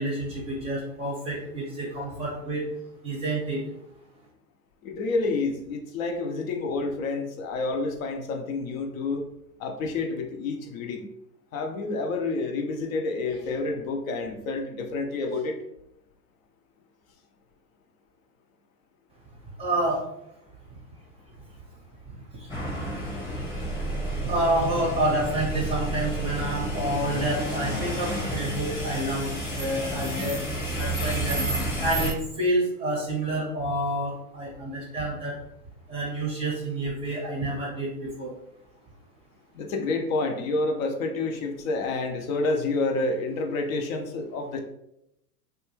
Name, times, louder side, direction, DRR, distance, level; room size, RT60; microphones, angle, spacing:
voice 1, 0.0-2.6 3.0-3.6 19.6-20.0 24.2-30.4 30.8-31.4 31.8-35.4 35.9-38.3, right 1 dB, 15° right, -3 dB, 0.5 m, -28 dB
voice 2, 4.8-9.2 9.6-11.1 11.5-15.6 39.5-44.6, left 3 dB, 60° left, 4 dB, 0.6 m, -29 dB
sound 1, 22.5-32.1, right 1 dB, 10° left, 0.8 m, -30 dB
2.6 x 2.3 x 3.0 m, 0.83 s
hypercardioid pair, 115°, 48 cm